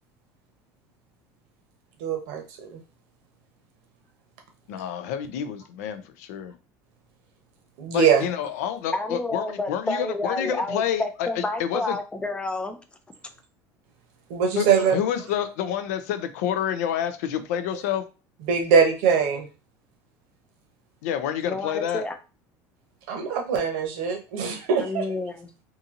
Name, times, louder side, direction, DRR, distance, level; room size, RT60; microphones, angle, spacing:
voice 1, 2.0-2.4 2.7-2.8 7.8-8.2 14.3-15.0 18.5-19.5 23.1-25.0, right 6 dB, 80° right, 3 dB, 0.8 m, -22 dB
voice 2, 4.7-6.5 7.9-12.0 14.6-18.0 21.0-22.0, left 9 dB, 90° left, 10 dB, 0.4 m, -28 dB
voice 3, 8.9-12.8 21.4-22.2 24.8-25.5, left 2 dB, 10° left, 8 dB, 0.4 m, -30 dB
2.7 x 2.6 x 2.5 m, 0.33 s
supercardioid pair, 115°, 8 cm